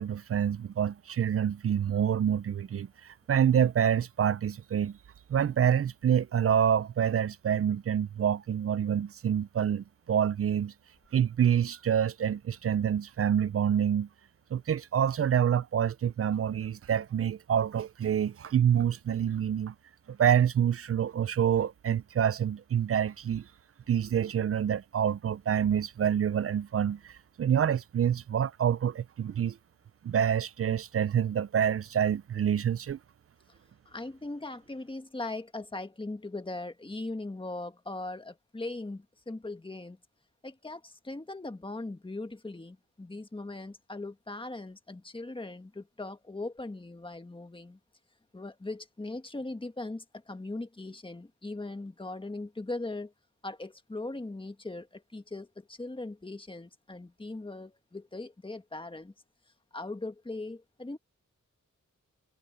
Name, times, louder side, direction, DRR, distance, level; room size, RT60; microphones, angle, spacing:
voice 1, 0.0-5.0 5.3-10.7 11.1-14.1 14.5-19.7 20.1-23.5 23.9-29.6 30.0-33.0, right 8 dB, 45° right, 0.4 m, -27 dB
voice 2, 33.8-40.0 40.4-47.8 48.3-53.1 53.4-59.1 59.7-61.0, left 2 dB, 15° left, 1.5 m, -39 dB
wide cardioid pair, 140°, 31 cm